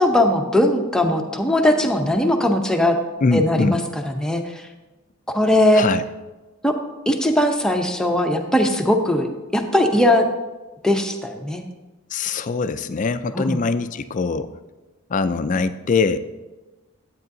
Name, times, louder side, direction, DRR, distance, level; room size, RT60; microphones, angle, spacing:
voice 1, 0.0-3.0 3.3-3.8 4.0-4.6 5.3-5.8 6.6-6.7 7.1-10.3 10.8-11.6 13.3-13.6, left 1 dB, 5° left, 3 dB, 0.7 m, -19 dB
Bass guitar, 1.0-4.7, right 3 dB, 15° right, 1.2 m, -45 dB
voice 2, 3.2-3.8 5.7-6.0 12.1-14.5 15.1-16.2, left 4 dB, 35° left, 12 dB, 0.4 m, -22 dB
12.0 x 8.5 x 2.7 m, 1.2 s
head